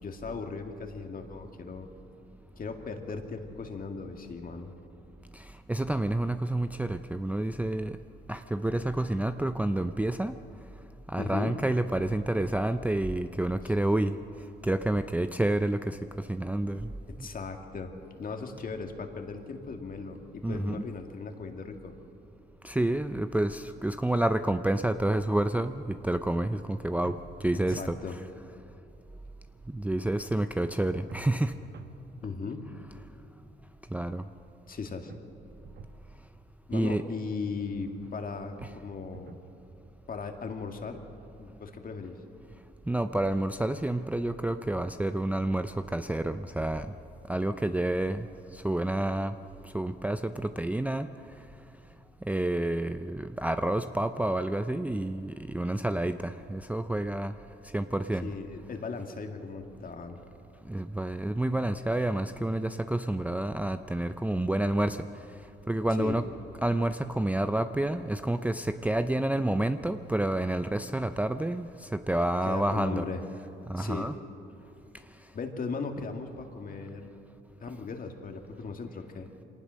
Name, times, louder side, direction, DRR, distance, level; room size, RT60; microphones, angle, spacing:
voice 1, 0.0-1.9 2.5-4.7 11.2-11.6 13.6-13.7 17.1-21.9 27.7-28.2 32.2-32.7 34.7-35.1 36.7-39.4 40.1-41.0 41.4-42.2 58.2-60.2 66.0-66.2 72.4-73.2 73.8-74.1 75.3-77.1 77.6-79.3, left 4 dB, 45° left, 5 dB, 2.1 m, -37 dB
voice 2, 5.3-8.0 8.3-10.3 11.1-14.2 14.6-16.9 17.2-17.3 20.4-20.8 22.6-28.0 29.7-31.6 33.9-34.2 36.7-37.1 38.6-38.7 42.9-46.9 47.3-48.3 48.5-49.4 49.6-51.1 52.3-57.3 57.7-58.3 60.7-65.1 65.7-66.3 66.6-73.1 73.7-74.1, right 1 dB, 5° right, 9 dB, 0.5 m, -29 dB
sound 1, 27.0-28.0 31.1-32.0 35.1-36.0 38.6-39.5, right 6 dB, 55° right, 1.2 m, -48 dB
23.5 x 18.5 x 6.4 m, 2.7 s
cardioid pair, 90°, 20 cm